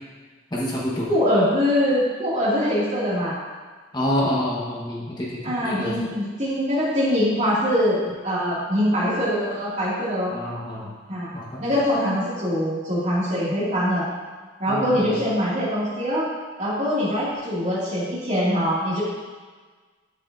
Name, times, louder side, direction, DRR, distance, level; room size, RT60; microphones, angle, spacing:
voice 1, 0.5-1.1 3.9-6.0 10.3-10.9 11.3-11.6 14.7-15.1, left 1 dB, 20° left, -5 dB, 1.2 m, -27 dB
voice 2, 1.0-3.4 5.4-10.3 11.1-11.3 11.6-14.1 14.6-16.3 16.6-19.0, equal, 35° right, -8 dB, 2.3 m, -23 dB
8.0 x 7.2 x 2.6 m, 1.4 s
head